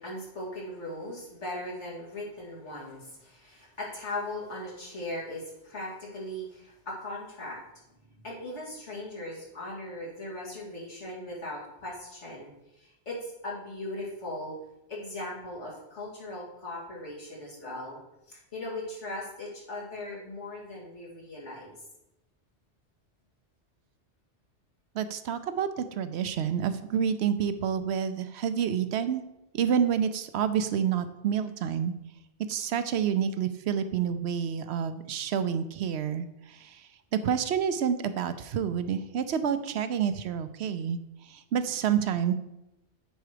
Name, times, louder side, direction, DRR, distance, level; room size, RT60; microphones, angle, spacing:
voice 1, 0.0-7.6 8.0-14.5 14.9-18.0 18.3-21.8, left 1 dB, 90° left, -4 dB, 2.8 m, -39 dB
voice 2, 24.9-29.2 29.5-31.9 32.5-36.8 37.2-41.0 41.3-42.3, right 8 dB, 70° right, 11 dB, 0.9 m, -28 dB
9.3 x 4.7 x 5.0 m, 0.89 s
omnidirectional pair, 1.2 m